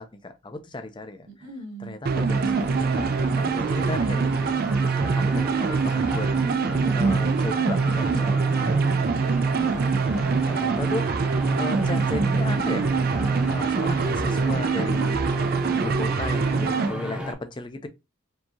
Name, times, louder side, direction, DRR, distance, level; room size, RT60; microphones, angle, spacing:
voice 1, 0.0-1.3 1.8-4.6 5.0-6.3 6.9-8.8 10.5-11.1 11.6-12.9 13.5-15.2 15.7-17.9, left 2 dB, 20° left, 0.5 m, -35 dB
voice 2, 1.3-2.0 16.6-17.1, right 2 dB, 75° right, 1.5 m, -42 dB
sound 1, 2.1-16.9, right 4 dB, 45° right, 0.4 m, -24 dB
sound 2, 2.3-17.3, equal, 5° right, 0.8 m, -34 dB
4.5 x 2.8 x 2.7 m
head